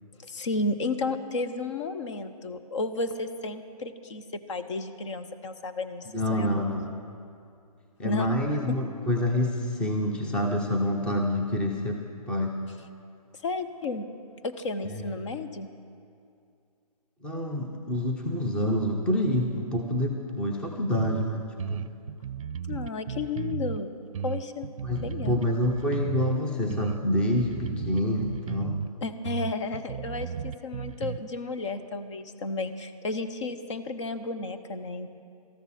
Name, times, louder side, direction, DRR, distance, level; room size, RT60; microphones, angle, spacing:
voice 1, 0.2-6.8 8.0-8.9 13.4-14.1 14.4-15.7 22.7-23.9 24.2-24.7 25.0-25.4 29.0-35.1, left 3 dB, 50° left, 9 dB, 0.8 m, -33 dB
voice 2, 6.1-6.9 8.0-12.5 14.9-15.0 17.2-21.8 24.8-28.8, left 1 dB, 5° left, 2 dB, 0.6 m, -27 dB
sound 1, 21.0-21.2 21.6-23.8 24.1-26.4 26.7-28.9 29.2-31.2, right 8 dB, 55° right, 0.5 m, -34 dB
17.5 x 13.5 x 4.2 m, 2.5 s
hypercardioid pair, 155°, 20 cm